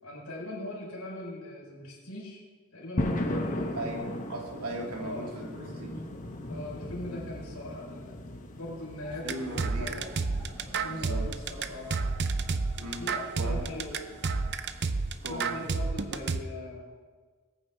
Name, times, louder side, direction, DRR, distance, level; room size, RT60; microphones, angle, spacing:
voice 1, 0.0-2.4 2.7-4.1 4.9-5.4 6.5-8.1 8.5-10.1 10.7-11.9 12.8-14.0 15.3-16.8, left 1 dB, 75° left, -3 dB, 4.7 m, -40 dB
sound 1, 3.0-15.9, left 1 dB, 35° left, 1.2 m, -39 dB
voice 2, 3.8-6.0 9.2-10.0 10.9-11.3 12.8-13.0 13.4-13.7 15.2-15.6, right 1 dB, 85° right, -1 dB, 2.7 m, -37 dB
sound 2, 9.0-14.7, right 1 dB, 5° right, 3.1 m, -51 dB
sound 3, 9.3-16.4, right 4 dB, 50° right, 0.6 m, -30 dB
20.5 x 9.1 x 3.5 m, 1.5 s
head